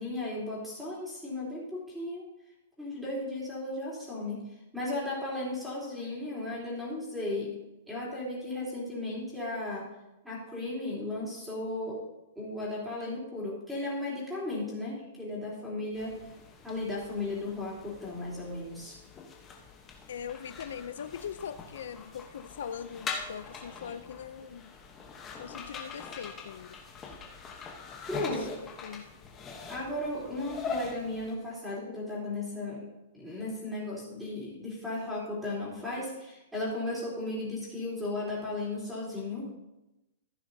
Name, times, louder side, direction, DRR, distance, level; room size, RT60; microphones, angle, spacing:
voice 1, 0.0-2.2 2.8-4.4 4.7-7.5 7.9-9.9 10.2-12.0 12.3-16.1 16.6-19.0 28.1-28.6 29.7-32.8 33.1-39.6, left 2 dB, ahead, -7 dB, 3.4 m, -35 dB
sound 1, 16.0-31.3, left 5 dB, 15° left, 1.0 m, -43 dB
voice 2, 20.1-24.7 25.4-26.8 28.2-29.0, left 8 dB, 70° left, 11 dB, 0.5 m, -41 dB
14.5 x 9.5 x 2.7 m, 0.96 s
hypercardioid pair, 175°, 0 cm